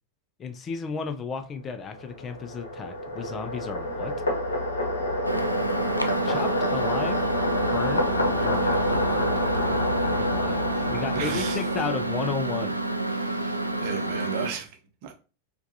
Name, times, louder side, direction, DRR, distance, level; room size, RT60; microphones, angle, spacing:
voice 1, 0.4-4.1 6.2-7.2 7.7-8.1 8.4-8.7 9.9-12.7, left 5 dB, 25° left, 0.4 m, -33 dB
sound 1, 1.9-12.5, left 1 dB, 70° left, 0.9 m, -28 dB
Microwave oven, 5.2-14.5, right 2 dB, 90° right, 0.3 m, -29 dB
voice 2, 8.4-9.8 10.7-11.8 13.1-15.1, right 7 dB, 45° right, 0.7 m, -37 dB
4.6 x 2.3 x 2.6 m
figure-of-eight pair, 90°, 0 cm